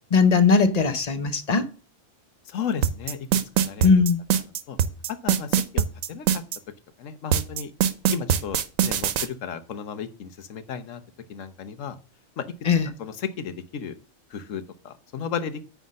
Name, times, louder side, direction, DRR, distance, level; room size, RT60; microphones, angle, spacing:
voice 1, 0.1-1.7 3.8-4.2 12.6-12.9, left 5 dB, 35° left, 0.8 m, -19 dB
voice 2, 2.5-3.2 3.6-4.0 4.7-4.8 5.2-6.3 7.0-7.7 8.1-11.0 11.3-12.0 12.4-12.5 13.0-13.9 14.3-15.6, left 7 dB, 70° left, 1.3 m, -34 dB
sound 1, 2.8-6.6 7.3-9.3, right 9 dB, 75° right, 1.1 m, -22 dB
9.5 x 3.5 x 6.3 m
omnidirectional pair, 1.4 m